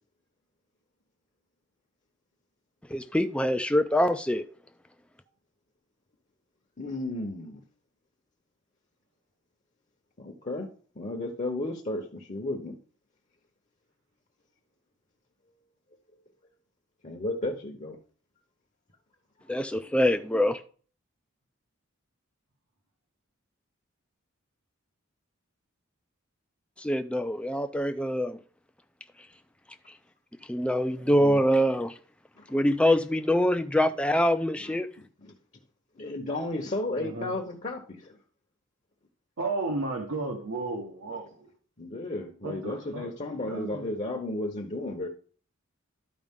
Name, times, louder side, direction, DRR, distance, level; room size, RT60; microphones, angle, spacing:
voice 1, 2.9-4.4 19.5-20.6 26.8-28.4 30.5-31.9 32.5-34.9, equal, 5° left, 0.4 m, -24 dB
voice 2, 6.8-7.6 10.2-10.7 11.0-12.8 17.0-18.0 32.4-32.7 34.6-34.8 35.2-35.3 36.0-38.2 41.8-45.1, left 2 dB, 35° left, 0.9 m, -33 dB
voice 3, 30.9-31.4 36.9-37.3 39.4-41.5 42.4-43.1 43.5-43.9, right 3 dB, 80° right, 1.4 m, -34 dB
12.0 x 4.9 x 3.6 m
head